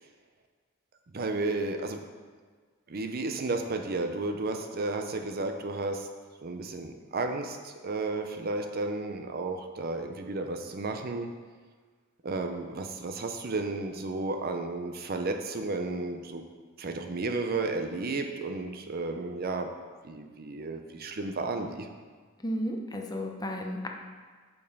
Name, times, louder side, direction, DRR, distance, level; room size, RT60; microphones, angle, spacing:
voice 1, 1.1-2.0 2.9-6.1 6.4-11.3 12.2-16.4 16.8-19.7 20.0-21.9, right 3 dB, 45° right, 6 dB, 0.6 m, -33 dB
voice 2, 22.4-23.9, equal, 20° left, 2 dB, 0.7 m, -33 dB
6.7 x 5.4 x 5.3 m, 1.6 s
head